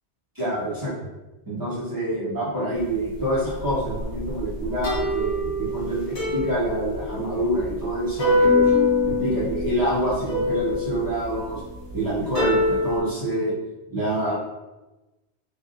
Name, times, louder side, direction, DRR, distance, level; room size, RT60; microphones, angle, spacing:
voice 1, 0.3-0.9 1.4-8.6 9.0-11.6 11.9-13.5 13.9-14.4, right 1 dB, 20° right, -9 dB, 1.0 m, -26 dB
sound 1, 3.0-13.0, left 2 dB, 80° left, 1.4 m, -25 dB
3.0 x 2.5 x 2.3 m, 1.1 s
omnidirectional pair, 1.1 m